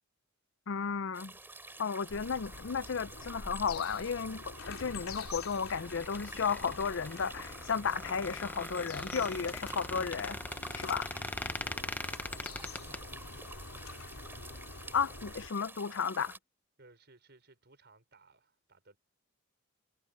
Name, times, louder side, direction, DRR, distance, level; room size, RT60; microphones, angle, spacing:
voice 1, 0.7-1.3 1.8-10.4 10.8-11.1 14.9-16.3, left 6 dB, 60° left, 0.5 m, -34 dB
Small waterfall in mountain forest, 1.1-16.4, right 2 dB, 10° right, 3.1 m, -50 dB
sound 1, 2.1-15.5, left 3 dB, 80° left, 3.2 m, -47 dB
Squeak, 5.8-13.0, left 2 dB, 10° left, 0.5 m, -41 dB
voice 2, 9.2-9.5 10.5-13.5 16.8-19.0, right 3 dB, 50° right, 5.3 m, -61 dB
head